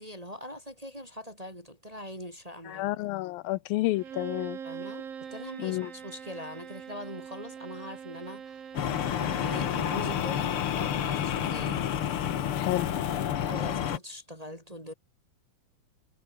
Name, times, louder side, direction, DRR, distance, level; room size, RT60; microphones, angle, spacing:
voice 1, 0.0-3.0 4.6-8.7 9.2-11.9 13.4-14.9, equal, 10° right, 2.5 m, -42 dB
voice 2, 2.7-4.6 5.6-5.9 12.6-12.9, left 18 dB, 85° left, 2.4 m, -30 dB
Bowed string instrument, 3.9-9.9, right 7 dB, 70° right, 5.0 m, -42 dB
sound 1, 8.7-14.0, left 9 dB, 60° left, 1.5 m, -29 dB
omnidirectional pair, 4.2 m